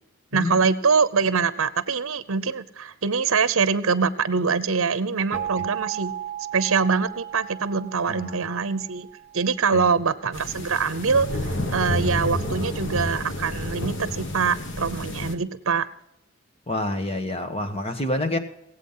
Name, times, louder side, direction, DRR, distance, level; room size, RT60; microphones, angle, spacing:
voice 1, 0.3-6.1 6.5-9.1 9.3-15.9, right 5 dB, 75° right, 0.8 m, -24 dB
sound 1, 5.3-10.1, right 11 dB, 40° right, 1.1 m, -36 dB
voice 2, 8.1-8.4 9.7-9.9 16.7-18.4, left 1 dB, 25° left, 1.3 m, -28 dB
sound 2, 10.3-15.3, left 1 dB, 55° left, 1.3 m, -30 dB
17.5 x 8.3 x 5.6 m
head